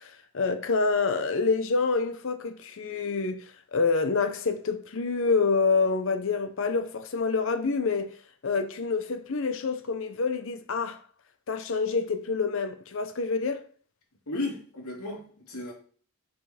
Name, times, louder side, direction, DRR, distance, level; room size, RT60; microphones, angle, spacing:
voice 1, 0.0-8.1 8.4-11.0 11.5-13.6, left 4 dB, 60° left, 0.6 m, -27 dB
voice 2, 14.3-15.7, left 2 dB, 90° left, 2.3 m, -34 dB
5.5 x 5.1 x 4.2 m
head